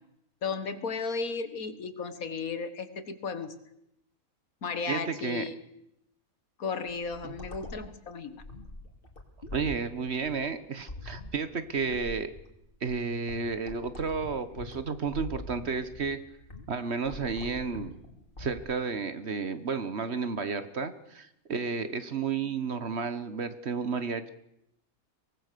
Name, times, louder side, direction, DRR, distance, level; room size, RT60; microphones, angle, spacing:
voice 1, 0.4-3.6 4.6-5.6 6.6-8.4, left 5 dB, 75° left, 11 dB, 1.9 m, -34 dB
voice 2, 4.9-5.5 7.2-7.3 9.5-12.3 12.8-16.2 16.7-18.0 18.4-24.3, right 5 dB, 50° right, 12 dB, 1.4 m, -32 dB
sound 1, 6.9-18.8, left 2 dB, 40° left, 2.9 m, -44 dB
23.5 x 18.0 x 6.8 m, 0.80 s
omnidirectional pair, 1.5 m